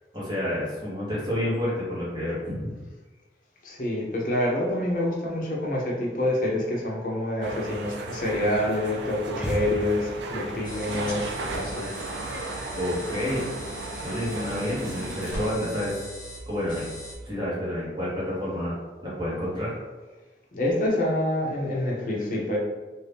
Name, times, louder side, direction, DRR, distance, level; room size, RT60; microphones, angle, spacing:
voice 1, 0.1-2.7 12.8-13.4 14.0-16.1 16.5-16.9 17.2-18.7 19.0-19.7, left 1 dB, 25° right, -8 dB, 1.0 m, -29 dB
voice 2, 3.6-11.9 20.5-22.6, left 1 dB, 50° left, -3 dB, 0.7 m, -27 dB
sound 1, 7.4-15.5, right 2 dB, 85° right, 0.4 m, -35 dB
sound 2, 9.3-10.4, equal, 5° right, 0.4 m, -32 dB
sound 3, 10.6-17.1, equal, 25° left, 1.0 m, -40 dB
2.7 x 2.4 x 3.3 m, 1.3 s
head